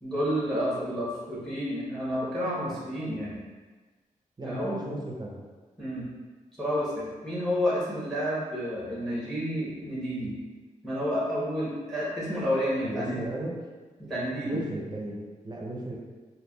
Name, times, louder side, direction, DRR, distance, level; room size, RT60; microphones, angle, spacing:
voice 1, 0.0-3.4 4.4-4.7 5.8-6.1 6.6-10.3 10.8-13.3 14.0-14.6, equal, ahead, -7 dB, 1.0 m, -30 dB
voice 2, 4.4-5.4 12.8-13.5 14.4-16.0, right 1 dB, 30° right, -2 dB, 0.6 m, -35 dB
3.3 x 2.2 x 2.2 m, 1.4 s
cardioid pair, 70°, 14 cm